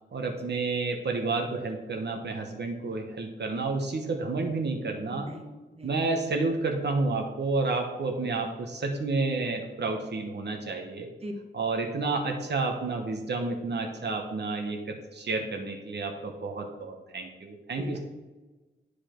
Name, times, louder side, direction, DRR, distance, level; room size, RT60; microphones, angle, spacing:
voice 1, 0.1-5.3 5.8-11.1 11.5-18.0, right 3 dB, 65° right, 3 dB, 1.0 m, -30 dB
voice 2, 5.1-5.9 11.2-11.3 17.8-18.0, right 1 dB, 35° right, 2 dB, 1.1 m, -40 dB
9.9 x 5.1 x 4.4 m, 1.2 s
wide cardioid pair, 150°, 19 cm